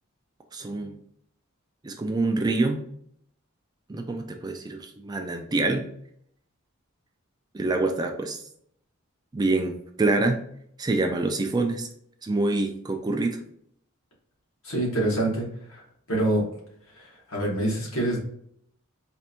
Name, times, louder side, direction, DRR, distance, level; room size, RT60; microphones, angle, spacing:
voice 1, 0.5-1.0 1.8-2.8 3.9-5.8 7.5-8.4 9.3-10.4 10.8-11.9 12.2-13.4, right 2 dB, 20° right, 4 dB, 0.3 m, -26 dB
voice 2, 14.6-15.8 16.1-16.4 17.0-18.2, right 1 dB, 65° left, -3 dB, 1.5 m, -26 dB
4.4 x 2.5 x 2.8 m, 0.67 s
head